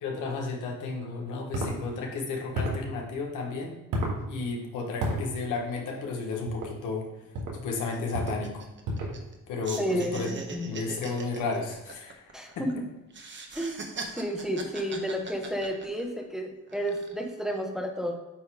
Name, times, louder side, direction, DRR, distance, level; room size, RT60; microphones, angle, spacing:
voice 1, 0.0-3.8 4.3-7.1 7.5-8.7 9.5-10.3 10.7-12.6, left 4 dB, 90° left, 1 dB, 1.4 m, -33 dB
sound 1, 1.5-1.8 2.5-2.9 3.9-4.2 5.0-5.2 6.5-6.7 7.3-7.6 8.1-8.4 8.8-9.2, right 1 dB, 85° right, 1.8 m, -30 dB
sound 2, 6.8-6.9 7.2-7.4 7.7-9.4 9.6-12.7 13.1-16.2 16.7-17.3, right 4 dB, 40° right, 1.1 m, -41 dB
voice 2, 9.8-10.7 12.3-12.7 13.5-18.2, equal, ahead, 2 dB, 1.1 m, -31 dB
9.1 x 3.1 x 4.9 m, 1.0 s
cardioid pair, 90°, 30 cm